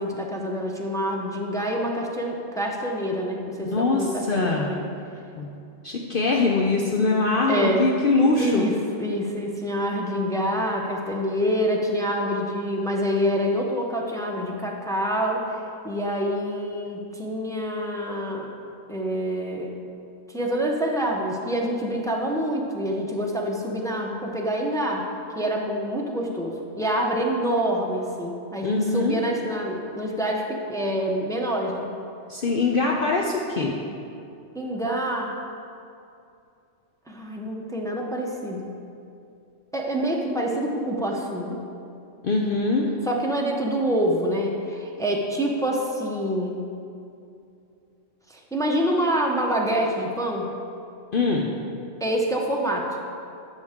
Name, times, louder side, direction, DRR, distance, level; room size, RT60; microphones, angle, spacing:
voice 1, 0.0-4.8 7.5-7.8 8.4-15.6 15.8-18.5 18.9-19.7 20.3-25.1 25.3-31.9 34.5-35.4 37.1-38.7 39.7-41.6 43.0-46.7 48.3-50.5 52.0-52.9, equal, 5° left, -1 dB, 0.7 m, -26 dB
voice 2, 3.6-4.7 5.3-5.5 5.8-8.7 28.6-29.2 32.3-33.7 42.2-42.9 51.1-51.5, left 3 dB, 55° left, -1 dB, 0.8 m, -22 dB
12.5 x 6.5 x 3.6 m, 2.6 s
omnidirectional pair, 1.2 m